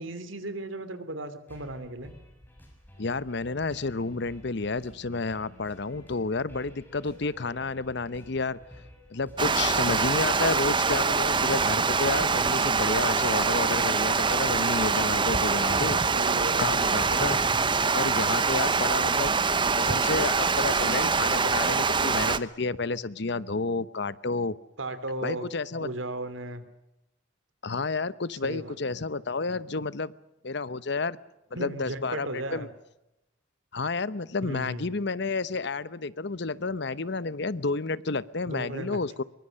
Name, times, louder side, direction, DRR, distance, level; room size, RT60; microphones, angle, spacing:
voice 1, 0.0-2.1 16.1-17.1 24.8-25.5 25.8-26.6 28.4-29.0 31.5-32.7 34.4-35.0 38.5-39.2, right 1 dB, 80° right, 11 dB, 2.9 m, -36 dB
sound 1, 1.5-17.0, equal, 10° left, 6.6 m, -51 dB
voice 2, 3.0-8.6 9.1-16.0 16.6-17.4 17.9-19.4 19.7-24.6 25.2-25.9 27.6-30.1 30.4-31.2 31.6-32.7 33.7-39.2, left 3 dB, 60° left, 17 dB, 0.9 m, -30 dB
Water, 9.4-22.4, right 4 dB, 25° right, 0.9 m, -24 dB
23.0 x 23.0 x 6.5 m, 0.89 s
head